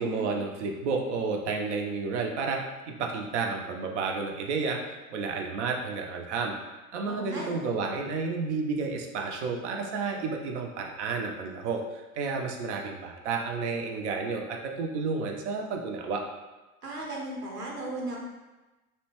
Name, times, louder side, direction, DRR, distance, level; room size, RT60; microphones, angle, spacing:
voice 1, 0.0-2.6 3.0-4.8 5.1-6.5 6.9-16.2, right 4 dB, 55° right, 2 dB, 0.5 m, -31 dB
voice 2, 7.1-7.6 16.8-18.2, right 2 dB, 85° right, -3 dB, 0.8 m, -36 dB
2.7 x 2.1 x 2.9 m, 1.1 s
figure-of-eight pair, 85°, 45 cm